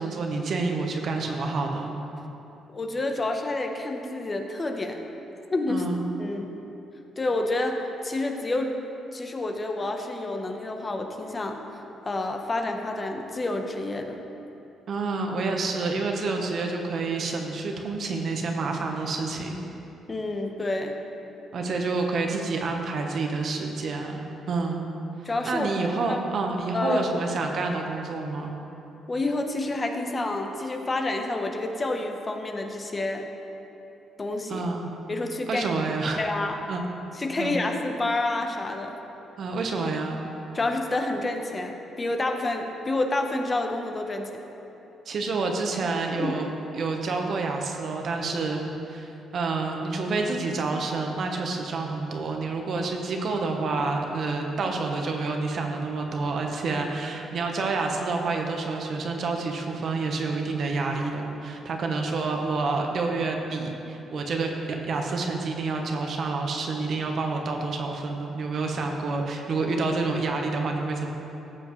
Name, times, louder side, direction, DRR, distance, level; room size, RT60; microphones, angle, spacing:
voice 1, 0.0-1.9 5.7-6.0 14.9-19.6 21.5-24.8 25.4-28.5 34.5-34.9 35.5-36.2 36.7-36.8 37.4-37.6 39.4-40.2 45.0-46.5 46.7-64.5 64.9-71.1, right 3 dB, 60° right, 2 dB, 1.1 m, -28 dB
voice 2, 2.7-5.0 5.5-5.9 6.2-6.5 7.2-8.8 9.1-11.6 12.0-14.2 20.1-21.0 25.2-25.7 26.1-26.2 26.7-27.0 29.1-33.3 34.2-34.6 35.1-35.7 36.2-36.6 37.2-39.0 40.5-44.4 46.2-46.3, left 2 dB, 30° left, 4 dB, 0.9 m, -28 dB
14.5 x 7.3 x 3.2 m, 3.0 s
cardioid pair, 90°, 0 cm